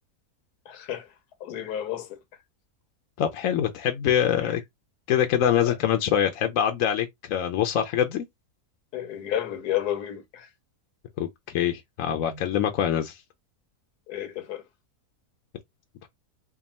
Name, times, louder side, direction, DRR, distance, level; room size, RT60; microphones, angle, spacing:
voice 1, 0.7-1.1 1.4-2.2 4.4-4.5 5.7-5.8 8.9-10.5 12.1-12.4 14.1-14.6, left 11 dB, 85° left, 1.4 m, -32 dB
voice 2, 3.2-4.6 5.1-8.3 11.2-13.2 16.0-16.1, left 9 dB, 70° left, 0.9 m, -24 dB
3.5 x 2.2 x 4.1 m
omnidirectional pair, 1.6 m